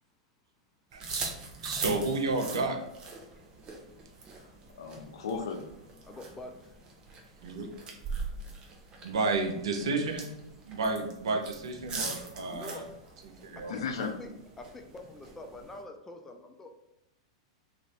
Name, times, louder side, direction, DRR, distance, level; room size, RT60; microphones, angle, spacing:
sound 1, 0.9-15.8, right 4 dB, 30° right, 0.6 m, -42 dB
voice 1, 0.9-1.3 1.6-2.8 7.4-7.7 9.0-10.3 10.6-12.9 13.2-13.7, right 3 dB, 75° right, 3 dB, 0.6 m, -31 dB
voice 2, 4.8-5.8 12.0-12.5 13.7-14.2, left 5 dB, 70° left, 5 dB, 0.5 m, -36 dB
voice 3, 6.0-6.6 12.5-12.8 13.7-16.8, left 2 dB, 15° left, 4 dB, 0.5 m, -45 dB
2.6 x 2.5 x 3.2 m, 0.83 s
hypercardioid pair, 105°, 3 cm